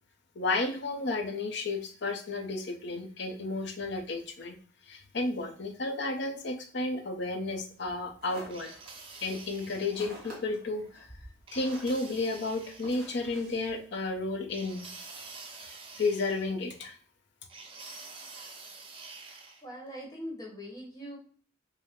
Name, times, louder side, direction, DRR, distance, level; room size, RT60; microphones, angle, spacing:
voice 1, 0.4-4.5 4.8-8.7 9.2-11.1 11.5-14.9 16.0-17.0, left 3 dB, 65° left, 5 dB, 0.7 m, -32 dB
sound 1, 7.8-14.5, right 1 dB, 50° right, 2.1 m, -51 dB
sound 2, 8.5-10.2 11.5-13.1 14.5-16.8 17.5-19.6, right 3 dB, 30° right, 0.8 m, -47 dB
voice 2, 19.6-21.2, equal, 20° left, -1 dB, 1.1 m, -41 dB
5.4 x 2.1 x 3.6 m, 0.43 s
head